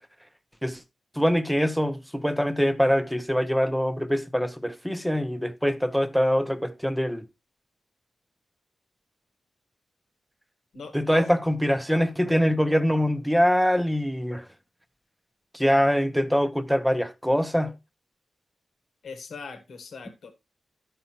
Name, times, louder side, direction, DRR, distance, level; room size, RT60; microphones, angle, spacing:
voice 1, 1.2-7.2 10.9-14.5 15.5-17.7, equal, ahead, 0.7 m, -24 dB
voice 2, 10.7-11.3 19.0-20.3, left 4 dB, 85° left, 1.4 m, -40 dB
12.5 x 5.6 x 2.9 m
wide cardioid pair, 105°, 0 cm